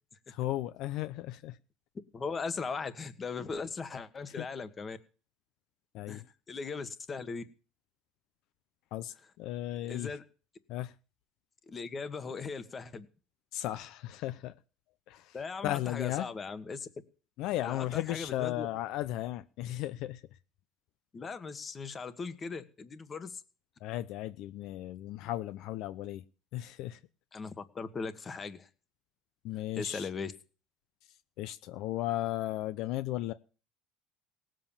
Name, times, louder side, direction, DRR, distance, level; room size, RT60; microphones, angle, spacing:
voice 1, 0.3-1.6 4.4-4.5 5.9-6.3 8.9-10.1 10.7-10.9 13.5-14.5 15.1-15.4 15.6-16.3 17.4-20.2 23.8-26.2 26.5-27.0 29.4-30.1 31.4-33.3, left 15 dB, 60° left, 0.7 m, -35 dB
voice 2, 2.1-5.0 6.1-7.4 9.8-10.2 11.7-13.1 15.3-16.9 17.6-18.7 21.1-23.4 27.3-28.7 29.8-30.3, left 4 dB, 25° left, 1.4 m, -39 dB
18.5 x 7.7 x 7.3 m
cardioid pair, 140°, 0 cm